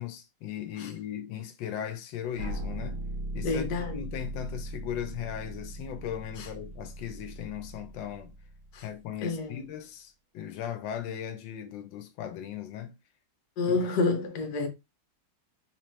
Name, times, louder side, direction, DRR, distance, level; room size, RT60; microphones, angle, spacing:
voice 1, 0.0-3.0 3.3-8.3 8.8-12.9 13.6-13.9, left 10 dB, 90° left, 1.4 m, -38 dB
sound 1, 2.4-9.3, right 1 dB, 80° right, 1.5 m, -39 dB
voice 2, 3.4-4.0 6.4-6.5 8.7-8.8 9.2-9.6 13.6-14.7, left 3 dB, 60° left, 1.4 m, -29 dB
3.8 x 3.0 x 3.1 m
omnidirectional pair, 2.0 m